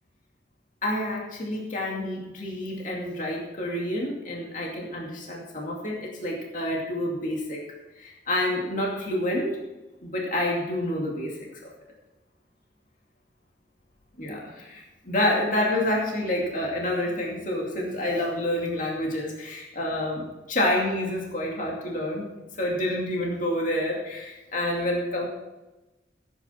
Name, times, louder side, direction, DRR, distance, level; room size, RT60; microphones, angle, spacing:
voice 1, 0.8-7.6 8.0-9.6 10.0-11.3 11.6-11.7 14.2-22.3 22.6-25.3, left 1 dB, 45° left, -2 dB, 2.5 m, -28 dB
15.0 x 9.1 x 4.4 m, 1.1 s
head